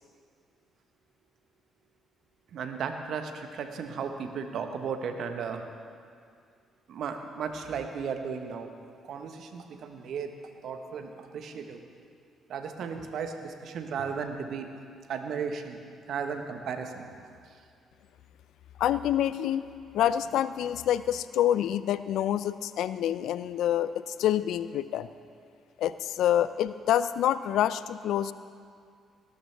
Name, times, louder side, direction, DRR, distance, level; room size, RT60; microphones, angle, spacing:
voice 1, 2.5-5.6 6.9-8.7 9.1-10.3 10.6-11.8 12.5-14.7 15.1-15.8 16.1-17.1, right 6 dB, 65° right, 6 dB, 1.2 m, -35 dB
voice 2, 18.8-19.6 19.9-25.1 25.8-28.3, left 11 dB, 75° left, 15 dB, 0.4 m, -27 dB
19.0 x 12.5 x 3.4 m, 2.2 s
hypercardioid pair, 50°, 0 cm